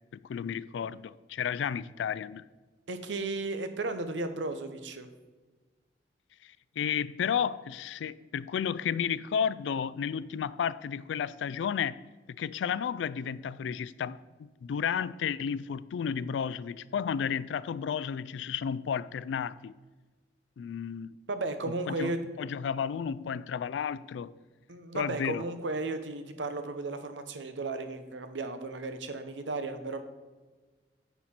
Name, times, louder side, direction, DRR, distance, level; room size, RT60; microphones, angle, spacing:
voice 1, 0.1-2.5 6.4-12.0 12.3-14.2 14.6-19.7 20.6-21.2 21.9-24.3 24.9-25.4, left 7 dB, 80° left, 0.3 m, -32 dB
voice 2, 2.9-5.1 21.3-22.2 24.7-30.0, right 2 dB, 85° right, 0.8 m, -34 dB
9.2 x 5.7 x 4.3 m
head